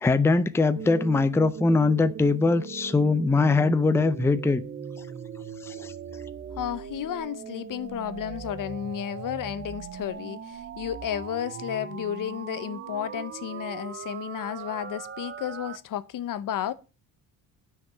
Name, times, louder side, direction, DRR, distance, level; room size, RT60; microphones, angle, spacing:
voice 1, 0.0-4.6 5.6-5.9, left 3 dB, 5° left, 0.6 m, -22 dB
sound 1, 0.8-15.8, right 7 dB, 30° right, 0.9 m, -39 dB
voice 2, 6.5-16.7, left 10 dB, 55° left, 0.8 m, -32 dB
9.4 x 5.9 x 7.4 m
cardioid pair, 145°, 39 cm